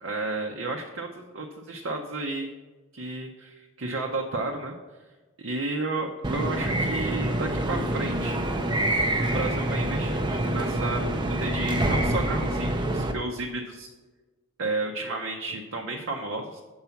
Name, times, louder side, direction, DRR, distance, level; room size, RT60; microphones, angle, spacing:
voice 1, 0.0-2.5 2.9-4.7 5.4-8.4 9.2-13.9 14.6-16.6, right 2 dB, 60° right, 1 dB, 0.6 m, -32 dB
sound 1, 6.2-13.1, right 1 dB, 20° right, 0.5 m, -26 dB
7.0 x 4.8 x 7.0 m, 1.3 s
head